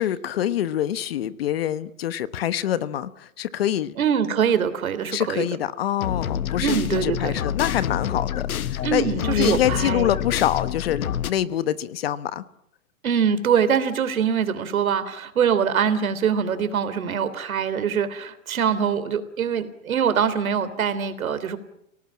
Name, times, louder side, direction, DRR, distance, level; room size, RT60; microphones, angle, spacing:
voice 1, 0.0-3.9 5.1-12.4, left 11 dB, 45° left, 15 dB, 1.2 m, -25 dB
voice 2, 4.0-5.5 6.6-7.3 8.8-10.1 13.0-21.6, right 7 dB, 75° right, 12 dB, 3.4 m, -23 dB
sound 1, 6.0-11.3, left 10 dB, 80° left, 1.4 m, -27 dB
29.5 x 18.5 x 8.7 m, 0.77 s
hypercardioid pair, 165°, 42 cm